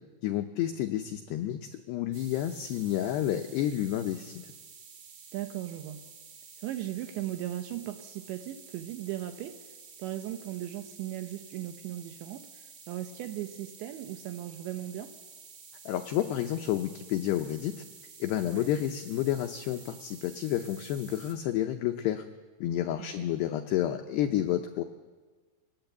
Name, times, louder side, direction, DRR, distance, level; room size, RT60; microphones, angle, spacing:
voice 1, 0.2-4.5 15.9-17.8 18.2-22.2 22.6-24.8, left 12 dB, 85° left, 5 dB, 2.3 m, -30 dB
sound 1, 2.1-21.3, right 6 dB, 55° right, 2.8 m, -51 dB
voice 2, 5.3-6.0 6.6-9.6 10.0-15.1 18.5-18.7 23.0-23.3, right 13 dB, 75° right, 7 dB, 3.0 m, -37 dB
23.0 x 19.5 x 8.1 m, 1.4 s
omnidirectional pair, 5.9 m